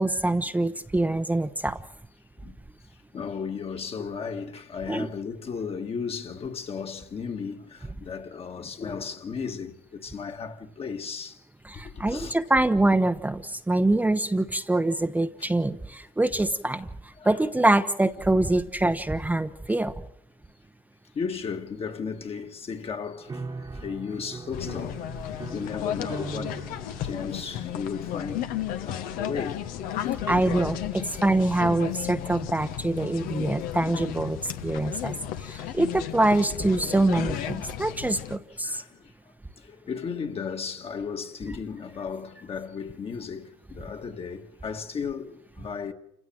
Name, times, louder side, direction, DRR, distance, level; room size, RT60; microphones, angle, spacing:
voice 1, 0.0-1.8 4.9-5.1 11.6-19.9 30.3-38.8, right 2 dB, 10° right, 0.8 m, -25 dB
voice 2, 3.1-11.4 11.7-12.4 15.4-15.5 17.2-17.3 19.7-19.8 21.1-28.5 28.8-30.3 35.6-35.8 38.6-39.1 39.6-45.9, left 6 dB, 40° left, 1.9 m, -35 dB
sound 1, 23.3-31.6, right 4 dB, 25° right, 1.4 m, -43 dB
sound 2, 24.5-38.4, left 11 dB, 80° left, 1.2 m, -34 dB
28.0 x 16.5 x 7.7 m
supercardioid pair, 85°, 15 cm